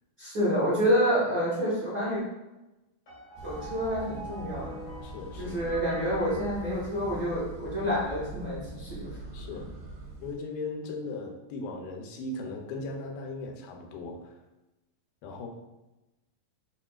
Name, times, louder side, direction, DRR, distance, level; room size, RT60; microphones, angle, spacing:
voice 1, 0.2-2.2 3.4-4.8 5.4-9.1 9.5-9.6, equal, 70° right, -11 dB, 0.9 m, -28 dB
sound 1, 3.1-7.4, right 1 dB, 55° left, 0.9 m, -46 dB
sound 2, 3.4-10.3, right 2 dB, 90° right, 2.5 m, -42 dB
voice 2, 5.0-5.7 9.3-9.7 10.2-14.3 15.2-15.5, left 3 dB, 85° left, 2 dB, 2.3 m, -38 dB
5.9 x 2.4 x 2.3 m, 1.0 s
omnidirectional pair, 4.0 m